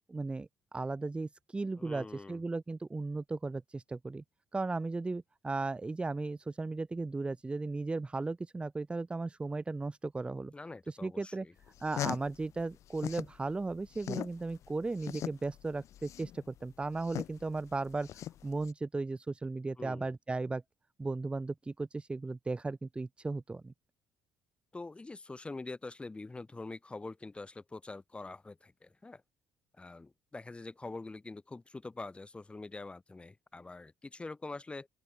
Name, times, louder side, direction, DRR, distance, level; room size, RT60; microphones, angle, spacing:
voice 1, 0.0-4.2 4.5-10.5 10.9-11.5 11.8-20.6 21.0-23.7, right 3 dB, 20° right, 0.9 m, -36 dB
voice 2, 1.8-2.4 10.5-11.5 19.8-20.1 24.7-29.2 29.8-34.9, left 3 dB, 20° left, 1.9 m, -45 dB
sound 1, 11.6-13.4 13.7-18.7, left 12 dB, 60° left, 1.5 m, -40 dB
open air
supercardioid pair, 75°, 6 cm